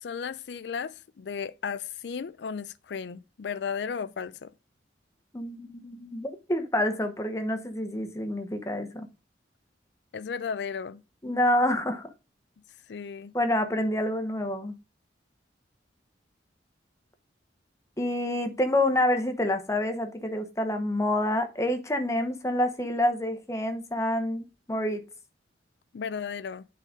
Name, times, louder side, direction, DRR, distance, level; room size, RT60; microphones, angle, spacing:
voice 1, 0.0-4.5 10.1-11.0 12.9-13.3 25.9-26.7, left 6 dB, 70° left, 0.4 m, -35 dB
voice 2, 5.3-9.1 11.2-12.1 13.3-14.7 18.0-25.0, left 1 dB, 15° left, 0.9 m, -27 dB
8.3 x 3.9 x 5.1 m
head